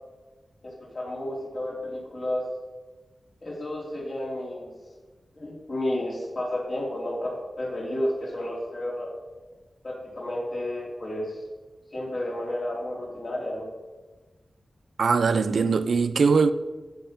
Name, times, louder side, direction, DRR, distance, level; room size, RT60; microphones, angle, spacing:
voice 1, 0.6-2.4 3.4-4.7 5.3-9.1 9.8-11.4 11.9-13.7, left 1 dB, 40° left, 3.6 m, -31 dB
voice 2, 15.0-16.5, right 5 dB, 70° right, 0.5 m, -21 dB
15.5 x 5.9 x 5.3 m
wide cardioid pair, 135°, 0 cm